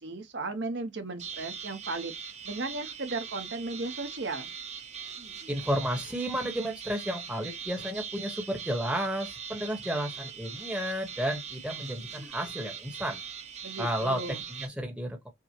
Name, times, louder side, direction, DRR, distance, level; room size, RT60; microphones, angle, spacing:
voice 1, 0.0-2.1 2.4-4.5 13.6-14.4, right 3 dB, 60° right, 0.8 m, -35 dB
sound 1, 1.2-14.7, right 7 dB, 35° right, 0.8 m, -41 dB
voice 2, 5.5-13.2 13.8-15.3, equal, 5° right, 0.9 m, -32 dB
5.9 x 2.0 x 2.8 m
head